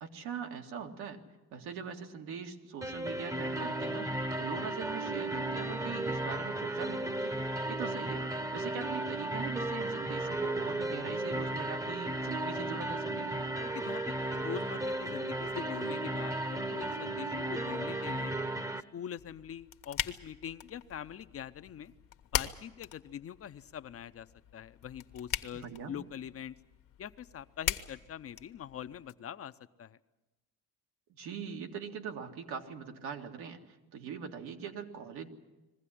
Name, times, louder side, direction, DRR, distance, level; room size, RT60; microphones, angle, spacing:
voice 1, 0.0-1.2 1.5-13.3 25.5-26.0 31.2-35.3, right 6 dB, 85° right, 3 dB, 2.1 m, -42 dB
sound 1, 2.8-18.8, right 2 dB, 10° right, 0.8 m, -35 dB
voice 2, 13.7-18.4 18.9-21.9 22.3-24.3 24.5-26.5 27.0-30.0, left 9 dB, 40° left, 12 dB, 0.6 m, -43 dB
sound 2, 19.2-29.1, left 10 dB, 60° left, 1.2 m, -41 dB
21.5 x 15.5 x 10.0 m, 1.1 s
cardioid pair, 110°, 37 cm